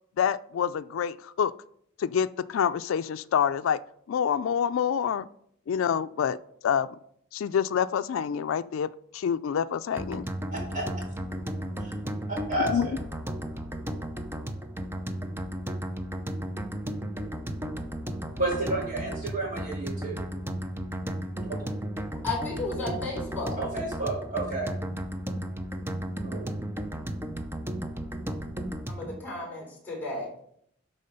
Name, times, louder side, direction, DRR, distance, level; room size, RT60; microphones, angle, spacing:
voice 1, 0.2-1.5 2.0-3.8 4.1-5.3 5.7-6.4 6.6-7.0 7.3-10.3 12.6-12.9, left 8 dB, 90° left, 12 dB, 0.3 m, -27 dB
sound 1, 10.0-29.2, right 1 dB, 10° right, 0.6 m, -34 dB
voice 2, 10.5-13.0 18.3-20.2 21.4-21.7 23.6-24.7 26.2-26.5, right 2 dB, 40° right, -7 dB, 2.6 m, -32 dB
voice 3, 22.2-23.5 28.9-30.5, left 2 dB, 10° left, -2 dB, 3.7 m, -34 dB
12.0 x 4.2 x 5.2 m, 0.68 s
head